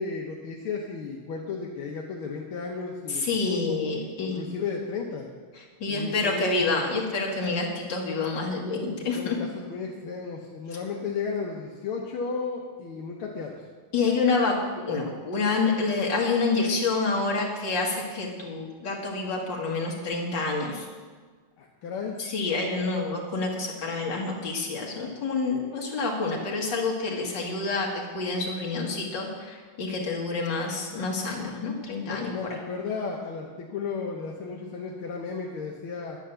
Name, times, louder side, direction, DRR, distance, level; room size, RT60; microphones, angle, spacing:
voice 1, 0.0-3.8 4.2-5.3 5.9-6.6 9.1-13.6 21.6-22.2 32.1-36.2, left 5 dB, 80° left, -1 dB, 1.9 m, -34 dB
voice 2, 3.2-4.4 5.8-9.4 13.9-14.6 14.9-20.8 22.2-32.3, left 3 dB, 55° left, -1 dB, 2.7 m, -28 dB
10.0 x 10.0 x 6.9 m, 1.5 s
omnidirectional pair, 2.3 m